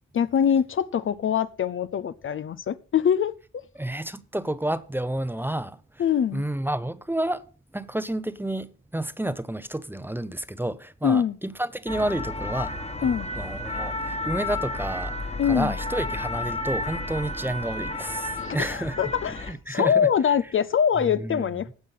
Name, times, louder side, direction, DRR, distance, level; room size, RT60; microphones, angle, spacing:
voice 1, 0.1-3.3 6.0-6.4 11.0-11.4 13.0-13.3 15.4-15.8 18.3-21.7, left 8 dB, 45° left, 0.6 m, -24 dB
voice 2, 3.8-5.8 6.3-7.4 7.7-12.7 13.0-19.0 19.4-20.1 21.2-21.5, right 1 dB, 5° right, 0.7 m, -30 dB
sound 1, 11.9-19.5, left 2 dB, 20° left, 1.5 m, -32 dB
16.0 x 5.8 x 5.5 m
cardioid pair, 85°, 29 cm